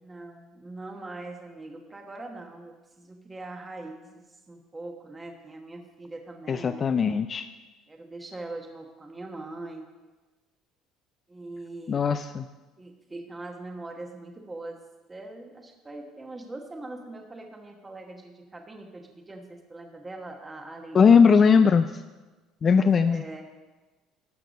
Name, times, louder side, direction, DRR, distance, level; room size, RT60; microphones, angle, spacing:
voice 1, 0.0-7.0 7.9-9.9 11.3-12.0 12.8-14.8 15.1-21.4 22.6-23.4, right 2 dB, 20° right, 3 dB, 1.1 m, -42 dB
voice 2, 6.5-7.5 11.9-12.5 20.9-22.0 22.6-23.2, left 6 dB, 35° left, 9 dB, 0.4 m, -19 dB
12.5 x 6.5 x 5.2 m, 1.2 s
cardioid pair, 110°, 0 cm